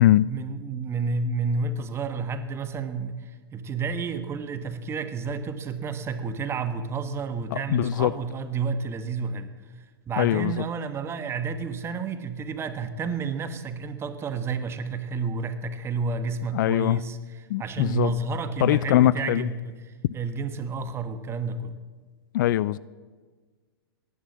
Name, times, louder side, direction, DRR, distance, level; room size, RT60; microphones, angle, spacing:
voice 1, 0.0-9.5 10.1-21.7, right 4 dB, 20° right, 10 dB, 1.3 m, -30 dB
voice 2, 7.5-8.1 10.2-10.5 16.5-17.0 17.5-18.1 18.6-19.5 22.3-22.8, left 14 dB, 50° left, 20 dB, 0.4 m, -21 dB
16.5 x 11.0 x 7.3 m, 1.4 s
hypercardioid pair, 110°, 13 cm